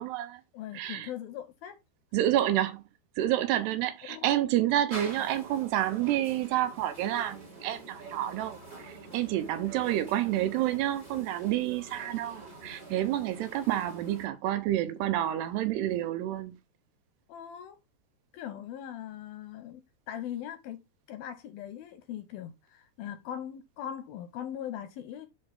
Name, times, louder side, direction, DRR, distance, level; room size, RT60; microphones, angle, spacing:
voice 1, 0.0-0.4 0.7-1.1 2.1-2.8 3.2-8.6 8.8-16.6, right 13 dB, 80° right, 2.9 m, -29 dB
voice 2, 0.5-1.8 4.1-4.4 17.3-17.8 18.3-20.8 21.1-25.3, left 10 dB, 75° left, 2.3 m, -40 dB
sound 1, 4.9-14.3, right 2 dB, 15° right, 2.0 m, -46 dB
10.5 x 4.5 x 3.5 m
omnidirectional pair, 5.0 m